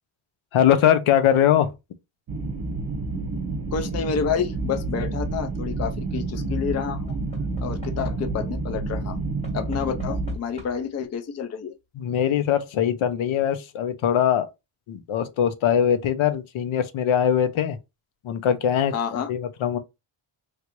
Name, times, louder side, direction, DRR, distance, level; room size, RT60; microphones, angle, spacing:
voice 1, 0.5-1.7 12.0-14.5 14.9-17.8 18.2-19.8, left 9 dB, 75° left, 0.6 m, -22 dB
sound 1, 2.3-10.4, right 2 dB, 50° right, 0.6 m, -29 dB
voice 2, 3.7-7.2 7.6-9.2 9.5-11.7 18.9-19.3, left 6 dB, 35° left, 0.4 m, -29 dB
Knock / Wood, 4.6-5.1 6.8-8.4 9.4-11.0 12.1-12.2 12.4-12.5, left 1 dB, 15° left, 1.0 m, -46 dB
3.2 x 2.5 x 2.9 m
wide cardioid pair, 145°, 49 cm